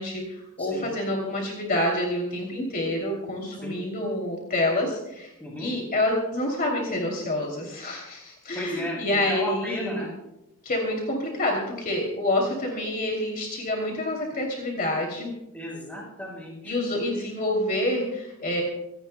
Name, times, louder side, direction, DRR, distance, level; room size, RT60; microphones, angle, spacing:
voice 1, 0.0-5.3 5.6-10.1 10.6-15.3 16.6-18.6, left 1 dB, 40° left, 0 dB, 2.8 m, -27 dB
voice 2, 8.5-10.1 15.5-16.8, left 1 dB, 5° left, -3 dB, 6.2 m, -34 dB
25.5 x 17.0 x 2.2 m, 0.86 s
head